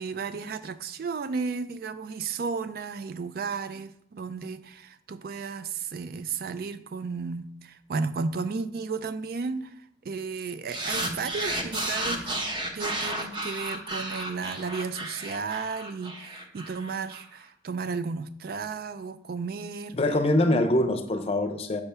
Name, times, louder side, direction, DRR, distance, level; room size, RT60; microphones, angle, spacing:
voice 1, 0.0-12.3 12.7-19.9 20.5-20.6, right 4 dB, 55° right, 0.3 m, -33 dB
sound 1, 10.7-17.2, right 1 dB, 25° right, 0.7 m, -32 dB
voice 2, 19.9-21.8, left 1 dB, 35° left, 0.6 m, -24 dB
6.9 x 3.4 x 5.5 m
head